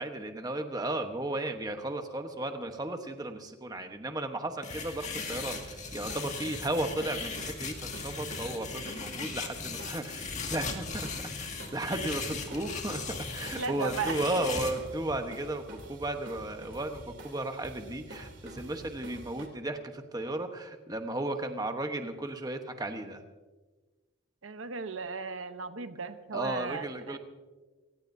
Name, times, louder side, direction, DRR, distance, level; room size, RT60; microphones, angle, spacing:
voice 1, 0.0-23.2 26.3-27.2, right 1 dB, 20° right, 6 dB, 1.1 m, -35 dB
sound 1, 4.6-14.7, left 5 dB, 35° left, 2.0 m, -38 dB
sound 2, 4.7-19.5, right 1 dB, 60° right, 3.1 m, -47 dB
voice 2, 13.6-14.5 24.4-27.2, right 5 dB, 80° right, 9 dB, 0.9 m, -36 dB
28.0 x 16.5 x 2.7 m, 1.3 s
head